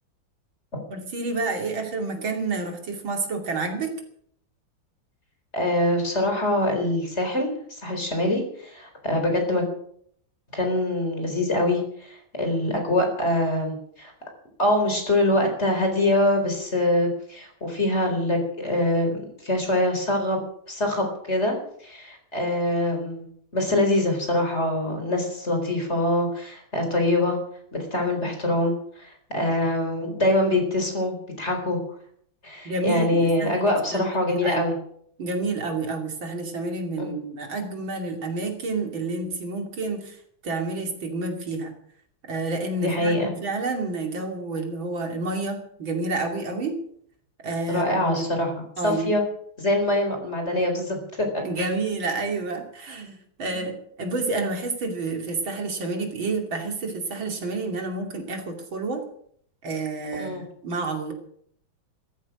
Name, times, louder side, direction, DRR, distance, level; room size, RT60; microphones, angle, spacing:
voice 1, 0.9-3.9 32.7-34.2 34.4-34.7 35.2-40.2 40.4-41.7 42.3-46.8 47.4-48.2 48.8-49.1 51.4-59.0 59.6-61.1, right 3 dB, 80° right, 3 dB, 3.5 m, -29 dB
voice 2, 5.5-9.7 10.5-14.1 14.6-20.4 20.7-23.3 23.5-27.4 27.7-31.8 32.4-34.7 37.0-37.1 42.7-43.3 47.7-48.5 48.8-49.2 49.6-51.3 51.6-51.7 60.2-60.4, left 1 dB, 35° left, 4 dB, 4.5 m, -24 dB
15.5 x 14.0 x 6.2 m, 0.65 s
omnidirectional pair, 2.1 m